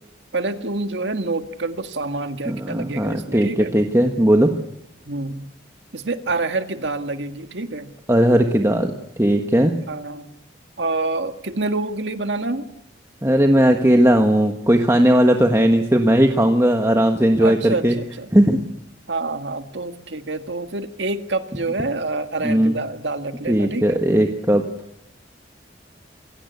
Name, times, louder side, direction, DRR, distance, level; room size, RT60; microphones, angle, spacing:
voice 1, 0.3-3.7 5.1-5.5 5.9-7.9 9.9-10.3 10.8-12.7 17.4-18.3 19.1-24.0, right 3 dB, 85° right, 8 dB, 1.8 m, -27 dB
voice 2, 2.4-4.5 8.1-9.7 13.2-17.9 18.3-18.6 22.4-22.7 23.5-24.6, right 1 dB, 15° right, 4 dB, 1.4 m, -17 dB
26.5 x 17.5 x 8.4 m, 0.82 s
head